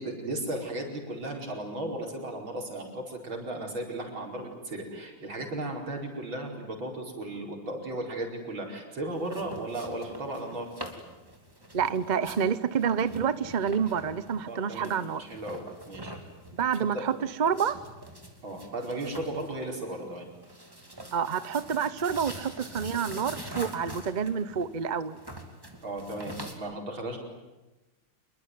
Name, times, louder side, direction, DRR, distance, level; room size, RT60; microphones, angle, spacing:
voice 1, 0.0-10.7 14.4-16.2 16.9-17.0 18.4-20.3 25.8-27.2, right 1 dB, 70° right, 2 dB, 5.7 m, -35 dB
sound 1, 9.1-26.5, right 1 dB, 10° right, 2.8 m, -45 dB
voice 2, 11.7-15.2 16.6-17.1 17.4-17.8 21.1-25.2, right 7 dB, 50° right, 14 dB, 0.5 m, -28 dB
27.5 x 22.0 x 9.5 m, 1.1 s
omnidirectional pair, 2.3 m